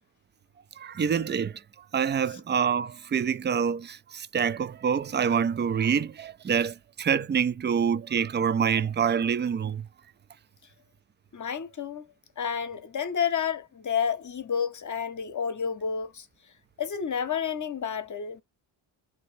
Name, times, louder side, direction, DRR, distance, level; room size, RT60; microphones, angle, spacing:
voice 1, 0.8-1.5 1.9-9.8, right 7 dB, 25° right, 0.3 m, -26 dB
voice 2, 11.3-12.1 12.4-16.3 16.8-18.4, left 7 dB, 35° left, 0.8 m, -30 dB
2.8 x 2.5 x 3.1 m
supercardioid pair, 45°, 50 cm